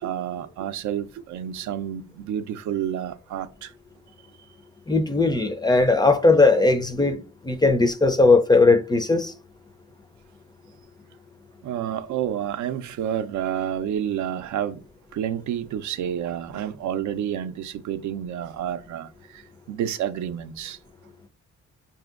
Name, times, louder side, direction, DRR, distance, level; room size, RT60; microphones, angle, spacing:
voice 1, 0.0-3.7 11.6-14.8 15.1-19.4 19.7-20.8, right 10 dB, 75° right, 0.5 m, -29 dB
voice 2, 4.9-9.3, left 3 dB, 15° left, 0.4 m, -18 dB
4.9 x 2.7 x 2.4 m
cardioid pair, 90°, 30 cm